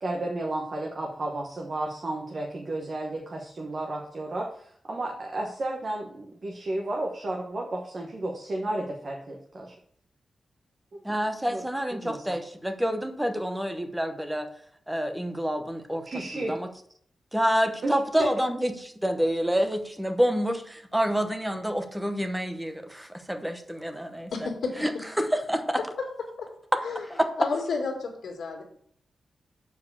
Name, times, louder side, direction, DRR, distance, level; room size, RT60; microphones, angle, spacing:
voice 1, 0.0-9.7 11.5-11.6 11.9-12.3 16.1-16.6 17.8-17.9 18.2-18.3, right 2 dB, 40° right, 0 dB, 1.1 m, -32 dB
voice 2, 11.0-14.5 14.9-16.0 16.3-16.7 17.3-24.5 24.8-24.9 25.2-25.8 27.1-27.3, equal, 5° right, 7 dB, 0.8 m, -28 dB
voice 3, 24.3-24.7 26.4-26.5 26.8-27.1 27.4-28.6, left 4 dB, 90° left, 1 dB, 2.1 m, -31 dB
7.0 x 4.7 x 6.9 m, 0.64 s
wide cardioid pair, 150°, 0 cm